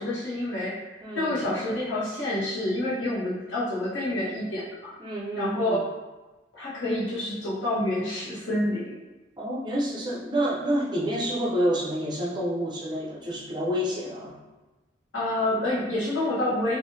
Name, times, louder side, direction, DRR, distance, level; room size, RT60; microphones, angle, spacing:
voice 1, 0.0-4.9 5.4-5.9 6.5-9.0 15.1-16.8, left 1 dB, 90° left, -7 dB, 1.1 m, -28 dB
voice 2, 1.0-1.4 5.0-5.8 9.4-14.4, equal, 25° right, -6 dB, 0.6 m, -28 dB
3.8 x 2.6 x 2.6 m, 1.2 s
head